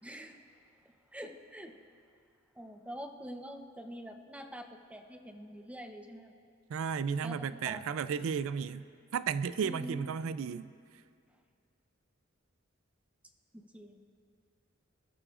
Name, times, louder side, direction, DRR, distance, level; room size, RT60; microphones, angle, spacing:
voice 1, 0.0-0.4 1.1-1.7 2.6-6.3 7.2-7.8 9.6-10.1 13.5-14.0, equal, 5° right, 4 dB, 0.8 m, -45 dB
voice 2, 6.7-8.8 9.1-10.7, right 6 dB, 85° right, 15 dB, 0.4 m, -33 dB
26.5 x 13.0 x 2.5 m, 2.4 s
head